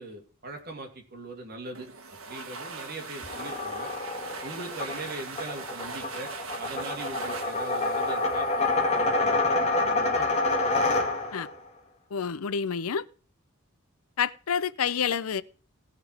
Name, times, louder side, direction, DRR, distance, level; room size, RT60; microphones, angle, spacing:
voice 1, 0.0-1.9 2.3-3.9 4.4-6.3 6.6-10.2, right 2 dB, 45° right, 2.6 m, -41 dB
sound 1, 1.7-9.2, right 4 dB, 70° right, 1.6 m, -41 dB
sound 2, 3.2-11.5, left 2 dB, 30° left, 2.0 m, -27 dB
voice 2, 12.1-13.0 14.2-15.4, left 7 dB, 90° left, 0.6 m, -28 dB
17.5 x 5.9 x 4.7 m
head